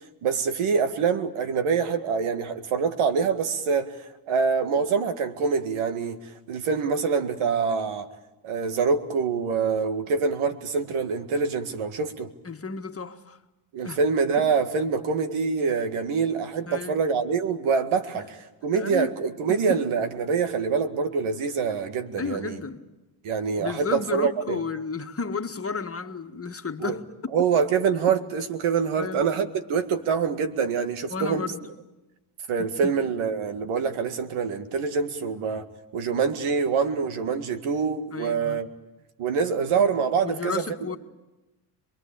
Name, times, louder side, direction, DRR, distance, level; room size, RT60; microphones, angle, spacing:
voice 1, 0.2-8.1 8.4-12.3 13.7-18.4 18.6-22.6 23.2-24.6 26.8-27.0 27.3-31.5 32.5-35.7 35.9-38.7 39.2-40.6, right 5 dB, 75° right, 2.1 m, -25 dB
voice 2, 12.5-13.4 13.8-14.0 16.7-17.0 18.7-19.1 19.5-19.8 22.2-22.9 23.6-27.3 29.0-29.3 31.1-31.7 32.6-32.9 38.1-38.6 40.2-41.0, left 4 dB, 30° left, 1.7 m, -33 dB
26.5 x 22.0 x 8.6 m
cardioid pair, 80°, 49 cm